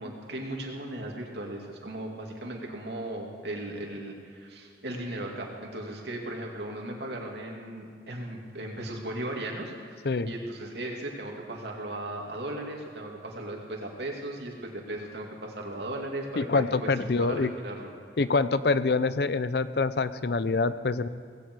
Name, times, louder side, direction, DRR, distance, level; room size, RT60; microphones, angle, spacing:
voice 1, 0.0-16.9 17.2-17.9, right 1 dB, 70° right, 0 dB, 2.7 m, -37 dB
voice 2, 16.4-17.5 18.2-21.1, left 3 dB, 60° left, 14 dB, 0.6 m, -25 dB
18.5 x 16.5 x 4.8 m, 2.3 s
head